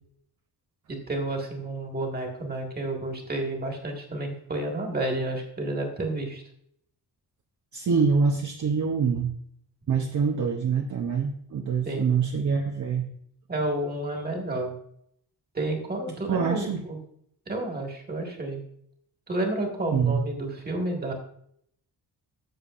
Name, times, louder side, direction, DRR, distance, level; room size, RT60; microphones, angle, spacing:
voice 1, 0.9-6.4 11.8-12.1 13.5-14.7 15.5-17.0 17.5-18.6 19.3-21.1, right 2 dB, 25° right, 1 dB, 1.7 m, -30 dB
voice 2, 7.7-9.3 9.9-13.1 16.2-16.8 19.9-20.2, right 5 dB, 45° right, 3 dB, 0.7 m, -25 dB
13.5 x 6.9 x 2.4 m, 0.68 s
wide cardioid pair, 160°, 40 cm